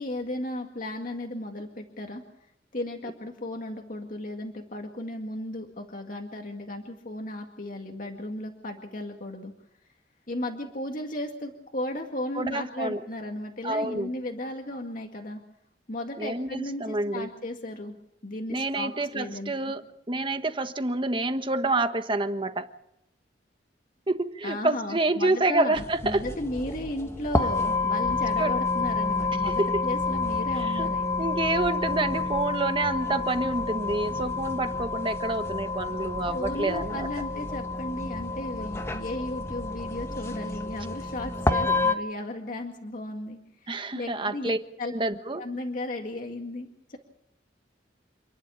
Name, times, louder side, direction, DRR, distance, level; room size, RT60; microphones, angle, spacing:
voice 1, 0.0-2.2 2.7-9.5 10.3-15.4 15.9-17.9 18.2-19.5 24.4-31.3 36.3-44.5 44.8-44.9 45.4-47.0, left 1 dB, 50° left, 2 dB, 2.0 m, -35 dB
voice 2, 12.3-13.0 13.6-14.1 16.2-17.3 18.5-22.7 24.1-26.2 28.4-28.5 29.4-29.8 30.6-30.9 31.2-37.1 43.7-44.6 44.9-45.5, right 2 dB, 30° right, 8 dB, 1.3 m, -28 dB
sound 1, 25.7-42.0, left 3 dB, 15° left, 1.4 m, -29 dB
28.0 x 11.5 x 8.8 m, 0.81 s
head